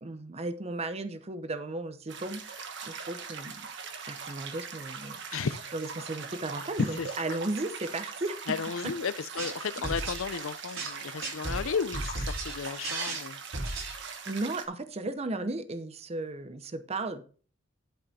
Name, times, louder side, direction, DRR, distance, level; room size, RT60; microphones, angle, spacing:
voice 1, 0.0-2.4 2.8-3.7 4.1-5.5 5.7-8.6 12.8-13.0 14.3-17.2, right 2 dB, 30° right, 0.7 m, -35 dB
sound 1, 2.1-14.7, right 5 dB, 60° right, 1.4 m, -41 dB
voice 2, 8.5-13.4, left 6 dB, 85° left, 0.5 m, -33 dB
sound 2, 9.2-14.4, right 2 dB, 85° right, 3.6 m, -36 dB
11.0 x 5.2 x 4.1 m
head